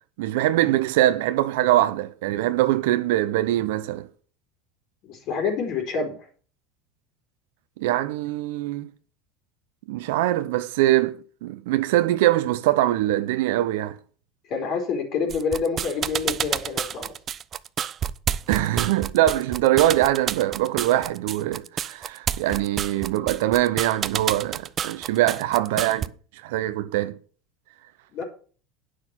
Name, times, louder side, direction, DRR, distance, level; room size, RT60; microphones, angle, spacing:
voice 1, 0.2-4.1 7.8-8.9 9.9-14.0 18.5-26.1 26.4-27.2, right 14 dB, 80° right, 0.8 m, -23 dB
voice 2, 5.0-6.2 14.5-17.1 28.1-28.2, left 5 dB, 55° left, 4.0 m, -27 dB
sound 1, 15.3-26.1, right 8 dB, 35° right, 0.5 m, -29 dB
9.6 x 6.4 x 7.6 m
supercardioid pair, 115°, 0 cm